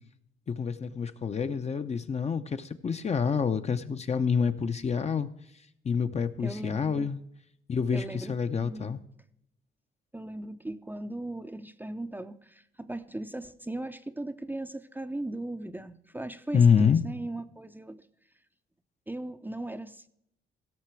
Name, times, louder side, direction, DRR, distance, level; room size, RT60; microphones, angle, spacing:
voice 1, 0.5-5.3 5.8-7.2 7.7-9.0 16.5-17.0, left 6 dB, 35° left, 9 dB, 0.7 m, -27 dB
voice 2, 6.4-7.1 7.9-9.0 10.1-18.1 19.1-20.1, right 1 dB, 10° right, 9 dB, 0.6 m, -38 dB
16.5 x 6.7 x 4.6 m, 0.75 s
cardioid pair, 90°, 20 cm